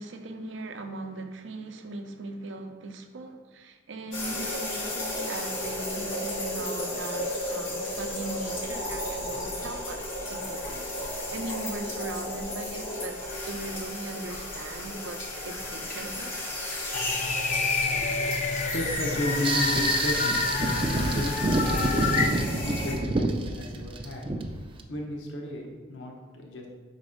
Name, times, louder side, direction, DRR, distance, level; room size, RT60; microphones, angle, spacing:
voice 1, 0.0-16.4, right 2 dB, 70° right, 6 dB, 0.6 m, -39 dB
sound 1, 4.1-22.9, left 1 dB, 85° left, 1.9 m, -34 dB
sound 2, 16.9-22.3, left 4 dB, 40° left, 0.5 m, -28 dB
voice 2, 17.9-24.3 24.9-26.7, left 1 dB, 70° left, 0 dB, 0.8 m, -34 dB
sound 3, 19.4-24.8, right 2 dB, 25° right, 0.4 m, -28 dB
5.1 x 4.1 x 4.9 m, 1.4 s
head